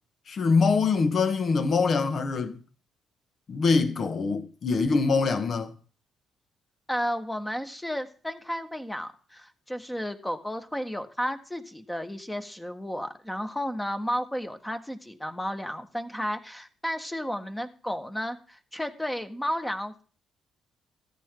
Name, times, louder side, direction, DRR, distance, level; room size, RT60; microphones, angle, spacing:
voice 1, 0.3-2.6 3.5-5.7, left 4 dB, 50° left, 1.6 m, -24 dB
voice 2, 6.9-20.0, equal, 10° left, 1.5 m, -33 dB
13.5 x 9.4 x 3.9 m
cardioid pair, 90°, 0 cm